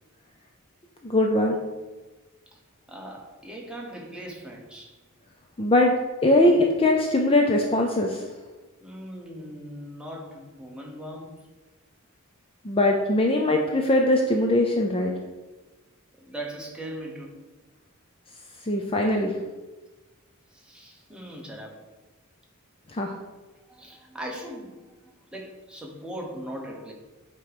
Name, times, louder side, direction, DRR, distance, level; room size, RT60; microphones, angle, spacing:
voice 1, 1.0-1.6 5.6-5.9 6.2-8.2 12.6-15.1 18.6-19.3 22.9-23.1, left 1 dB, 25° left, 1 dB, 0.5 m, -21 dB
voice 2, 2.9-5.0 8.8-11.5 16.2-17.4 20.5-21.8 23.7-26.9, right 1 dB, 5° right, -1 dB, 1.0 m, -39 dB
8.6 x 3.0 x 4.9 m, 1.2 s
head